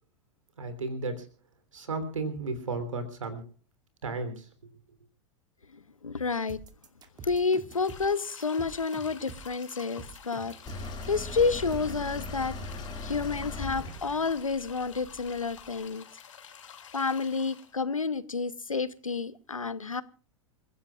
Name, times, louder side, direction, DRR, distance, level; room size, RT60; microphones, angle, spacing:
voice 1, 0.6-1.3 1.7-3.4 4.0-4.5, right 3 dB, 75° right, 3.4 m, -34 dB
voice 2, 6.0-6.6 7.2-12.5 13.0-16.0 16.9-20.0, left 4 dB, 85° left, 0.9 m, -30 dB
sound 1, 6.5-12.1, right 4 dB, 25° right, 2.4 m, -47 dB
sound 2, 7.7-17.7, left 8 dB, 70° left, 2.5 m, -49 dB
sound 3, 10.7-15.6, left 2 dB, 25° left, 5.1 m, -39 dB
28.5 x 15.5 x 2.4 m
figure-of-eight pair, 90°, 17 cm